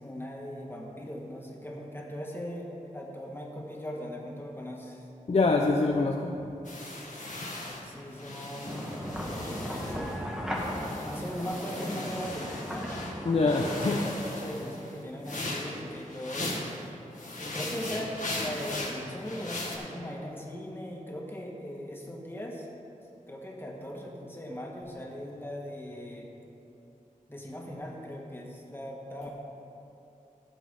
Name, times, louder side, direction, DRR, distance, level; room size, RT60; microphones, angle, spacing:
voice 1, 0.0-5.1 7.8-8.9 9.2-10.2 11.0-12.9 13.6-16.7 17.4-22.7 23.3-26.3 27.3-29.3, equal, 15° left, -2 dB, 1.7 m, -39 dB
voice 2, 5.3-6.4 13.3-14.0, left 3 dB, 50° left, 1 dB, 0.6 m, -25 dB
sound 1, 6.6-10.2 10.5-13.1 13.5-16.8 17.1-19.8, left 2 dB, 65° left, 1.6 m, -38 dB
sound 2, 8.6-14.1, equal, 5° right, 1.5 m, -36 dB
15.5 x 7.3 x 3.8 m, 2.8 s
wide cardioid pair, 85°, 14 cm